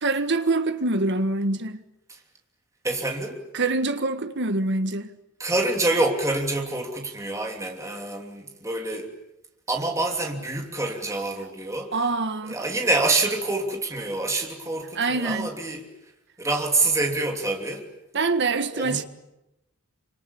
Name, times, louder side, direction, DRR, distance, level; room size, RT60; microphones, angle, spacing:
voice 1, 0.0-1.8 3.5-5.1 11.9-12.6 14.9-15.5 18.1-19.0, right 3 dB, 50° right, 1.6 m, -25 dB
voice 2, 2.8-3.4 5.4-9.1 9.7-12.0 12.4-15.9 16.4-17.8 18.7-19.1, right 2 dB, 15° right, 3.0 m, -26 dB
26.5 x 26.0 x 8.6 m
head